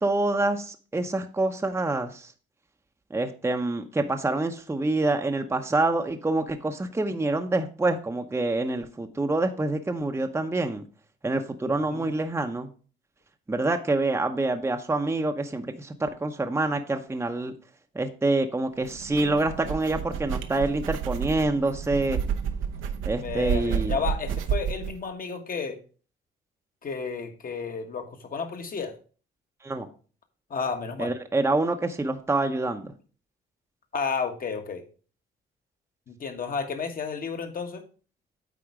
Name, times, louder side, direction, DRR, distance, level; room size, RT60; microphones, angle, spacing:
voice 1, 0.0-2.3 3.1-10.9 11.2-12.7 13.5-17.5 17.9-22.2 23.0-24.0 29.6-29.9 31.0-32.9, right 2 dB, 15° right, 5 dB, 0.7 m, -26 dB
voice 2, 11.7-12.1 23.1-25.8 26.8-28.9 30.5-31.1 33.9-34.9 36.1-37.8, left 5 dB, 45° left, 6 dB, 1.4 m, -32 dB
sound 1, 18.8-24.9, right 8 dB, 90° right, 0.8 m, -30 dB
8.8 x 4.2 x 4.8 m, 0.39 s
cardioid pair, 90°, 20 cm